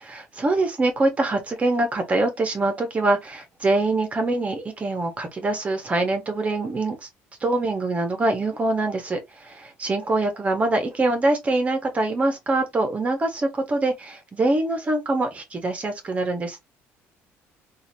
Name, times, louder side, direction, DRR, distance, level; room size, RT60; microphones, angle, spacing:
voice 1, 0.1-7.1 7.4-16.6, right 2 dB, 25° right, 1.4 m, -24 dB
3.9 x 2.8 x 2.9 m
cardioid pair, 135°, 5 cm